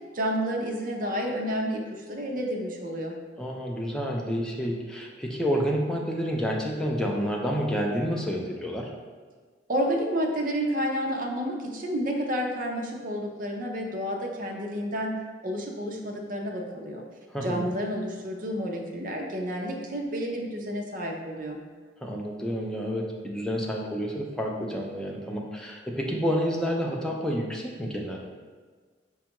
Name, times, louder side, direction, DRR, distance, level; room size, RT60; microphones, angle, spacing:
voice 1, 0.1-1.8 2.1-3.2 9.7-15.2 15.4-17.0 17.4-21.6, equal, 50° right, 1 dB, 0.5 m, -30 dB
voice 2, 3.4-8.9 17.3-17.7 22.0-28.2, equal, 5° left, -1 dB, 0.4 m, -29 dB
5.1 x 2.3 x 2.9 m, 1.5 s
head